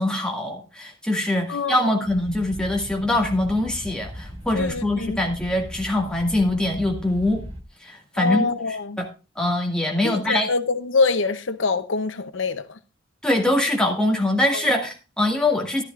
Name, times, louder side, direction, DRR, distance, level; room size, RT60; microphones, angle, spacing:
voice 1, 0.0-7.4 7.8-8.4 9.0-9.1 9.4-10.5 13.2-15.8, left 1 dB, 5° left, 2.0 m, -23 dB
voice 2, 1.5-2.0 4.5-5.2 8.2-9.0 10.0-12.8 14.5-14.6, left 4 dB, 75° left, 0.7 m, -25 dB
sound 1, 2.0-7.6, equal, 30° right, 2.3 m, -38 dB
14.0 x 12.0 x 2.4 m
head